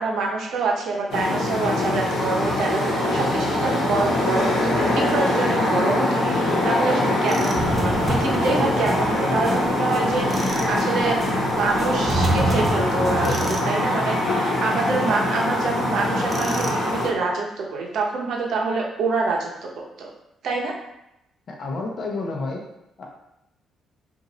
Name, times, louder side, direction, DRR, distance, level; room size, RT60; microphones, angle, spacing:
voice 1, 0.0-11.2 11.6-20.1 20.4-20.7, right 3 dB, 70° right, -1 dB, 0.7 m, -26 dB
sound 1, 1.1-17.1, left 1 dB, 80° left, 1.0 m, -23 dB
Tools, 7.3-7.7 10.3-10.7 13.2-13.7 16.3-16.9, right 2 dB, 35° right, 0.4 m, -33 dB
sound 2, 7.5-11.3 11.6-13.5, right 1 dB, 10° right, 1.3 m, -27 dB
voice 2, 21.5-22.6 23.0-23.1, left 3 dB, 55° left, 0 dB, 0.8 m, -30 dB
2.7 x 2.5 x 4.0 m, 0.85 s
cardioid pair, 90°, 0 cm